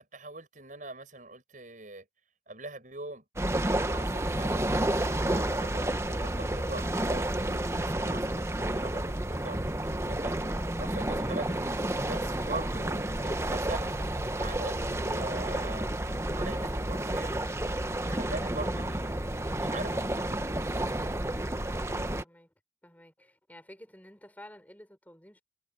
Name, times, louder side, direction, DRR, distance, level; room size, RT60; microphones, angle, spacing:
voice 1, 0.0-2.0 2.5-3.2 3.6-10.3 10.8-11.7 12.1-14.0 14.3-16.0 16.3-17.4 18.0-20.6, right 2 dB, 45° right, 7.8 m, -42 dB
sound 1, 3.4-22.2, right 1 dB, 15° right, 1.0 m, -30 dB
voice 2, 21.8-22.5 22.8-25.4, left 1 dB, 10° left, 6.0 m, -52 dB
head